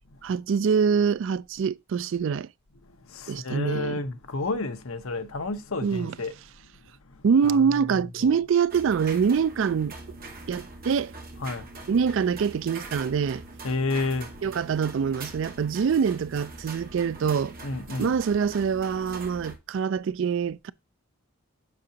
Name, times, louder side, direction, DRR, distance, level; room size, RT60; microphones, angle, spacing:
voice 1, 0.2-2.5 3.3-4.0 5.8-6.1 7.2-9.9 10.5-11.1 11.9-13.4 14.4-17.5 18.0-20.7, right 6 dB, 60° right, 0.3 m, -25 dB
voice 2, 2.8-6.4 7.0-8.4 10.5-10.6 11.4-12.0 13.6-14.4 17.6-18.1, left 3 dB, 75° left, 1.0 m, -32 dB
sound 1, 8.7-19.6, right 3 dB, 40° right, 1.5 m, -42 dB
7.5 x 5.8 x 2.8 m
head